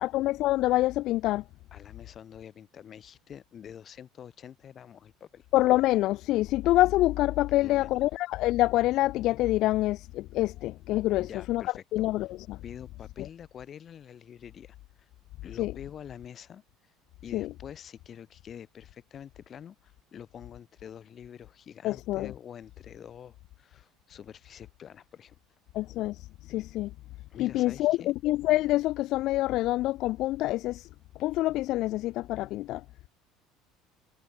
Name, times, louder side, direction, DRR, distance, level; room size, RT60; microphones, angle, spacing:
voice 1, 0.0-1.4 5.5-11.6 11.9-12.6 15.6-15.7 17.3-17.5 21.8-22.3 25.7-26.9 27.4-30.9 31.2-32.8, left 16 dB, 55° left, 2.2 m, -26 dB
voice 2, 1.7-5.5 7.6-8.0 11.2-11.8 12.6-15.1 15.4-16.9 17.2-25.4 27.3-28.1, left 8 dB, 35° left, 7.1 m, -46 dB
cardioid pair, 140°, 0 cm